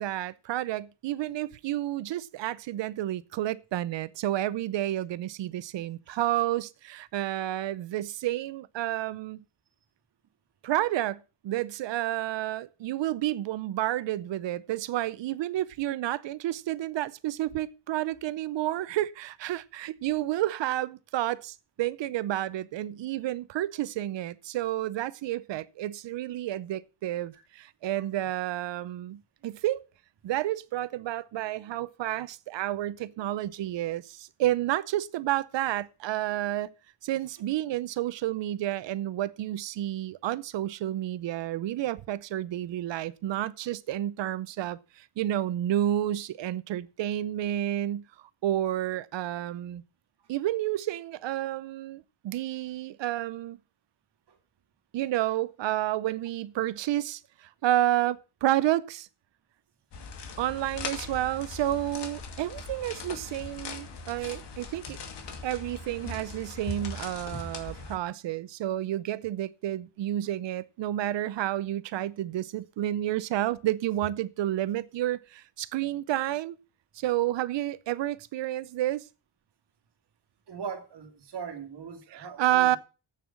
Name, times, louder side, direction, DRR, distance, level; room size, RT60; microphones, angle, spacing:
voice 1, 0.0-9.4 10.6-29.8 30.2-36.7 37.0-49.8 50.3-53.6 54.9-59.1 60.4-65.0 65.4-76.6 76.9-79.1 82.1-82.8, right 13 dB, 90° right, 0.7 m, -30 dB
sound 1, 59.9-68.0, left 4 dB, 70° left, 2.3 m, -40 dB
voice 2, 80.5-82.8, right 6 dB, 70° right, 2.4 m, -40 dB
8.6 x 7.1 x 7.1 m
wide cardioid pair, 135°, 42 cm